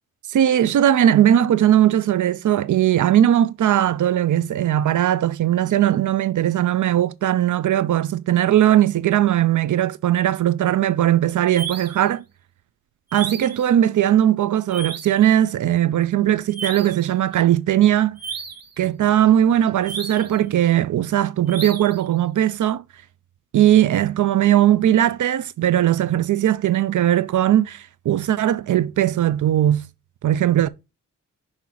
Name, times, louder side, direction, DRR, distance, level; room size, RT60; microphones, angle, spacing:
voice 1, 0.3-12.2 13.1-18.2 18.8-22.8 23.5-29.9 30.2-30.7, right 11 dB, 70° right, 0.5 m, -19 dB
sound 1, 11.5-12.1 13.1-13.7 14.7-15.2 16.5-17.1 18.2-18.7 19.8-20.4 21.5-22.0, right 5 dB, 50° right, 1.2 m, -33 dB
6.1 x 4.1 x 3.9 m
wide cardioid pair, 165°, 32 cm